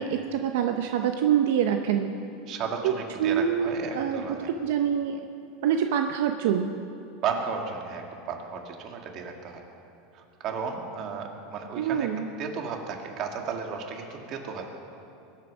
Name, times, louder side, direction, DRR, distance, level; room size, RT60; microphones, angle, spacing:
voice 1, 0.0-2.1 3.2-4.2 4.6-5.2 5.6-6.7 11.8-12.3, right 8 dB, 75° right, 5 dB, 0.7 m, -25 dB
voice 2, 2.5-4.5 7.2-9.6 10.1-12.1 12.4-14.7, right 5 dB, 40° right, 2 dB, 2.0 m, -34 dB
21.5 x 8.4 x 6.3 m, 2.7 s
supercardioid pair, 145°, 0 cm